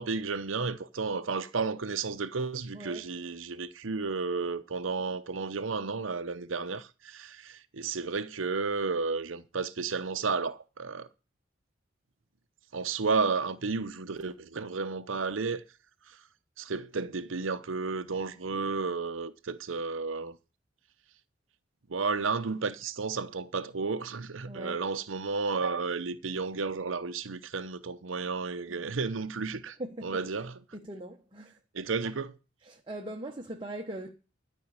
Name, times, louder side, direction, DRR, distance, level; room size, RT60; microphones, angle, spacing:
voice 1, 0.0-11.1 12.7-15.6 16.6-20.4 21.9-29.8 30.0-30.5 31.7-32.4, right 4 dB, 90° right, 0.8 m, -32 dB
voice 2, 24.5-24.8 28.7-28.8 29.8-30.2 30.7-31.5 32.7-34.1, right 1 dB, 25° right, 1.1 m, -40 dB
12.5 x 5.4 x 8.7 m
head